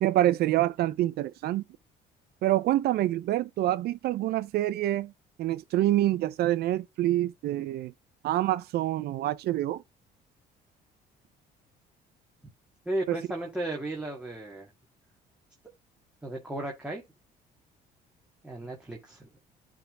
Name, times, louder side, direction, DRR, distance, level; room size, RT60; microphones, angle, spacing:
voice 1, 0.0-1.6 2.4-5.1 5.4-7.9 8.2-9.8 13.1-13.2, right 14 dB, 70° right, 0.6 m, -26 dB
voice 2, 12.9-14.7 16.2-17.0 18.4-19.3, right 1 dB, 5° right, 2.0 m, -34 dB
9.8 x 3.6 x 3.7 m
cardioid pair, 110°, 17 cm